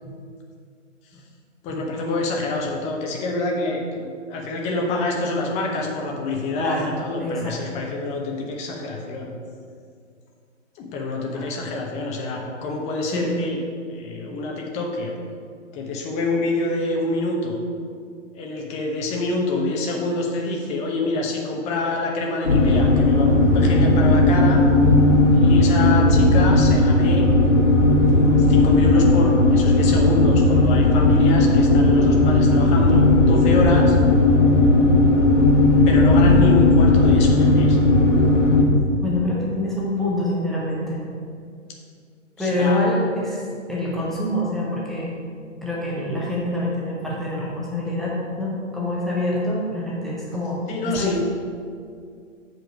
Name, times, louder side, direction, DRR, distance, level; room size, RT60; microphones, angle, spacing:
voice 1, 1.6-9.3 10.8-13.6 13.9-15.1 15.7-17.6 18.3-23.3 23.5-24.6 25.3-27.5 27.8-34.0 35.9-37.8 42.4-42.9 50.7-51.2, left 2 dB, 15° left, 0 dB, 1.0 m, -26 dB
voice 2, 6.6-6.9 7.2-7.6 8.8-8.9 11.3-11.4 13.1-13.4 22.4-22.5 39.0-41.0 42.4-45.2 45.6-51.2, left 1 dB, ahead, -6 dB, 0.6 m, -26 dB
sound 1, 22.5-38.6, left 2 dB, 75° left, 1.5 m, -16 dB
7.5 x 4.5 x 6.2 m, 2.2 s
figure-of-eight pair, 120°, 38 cm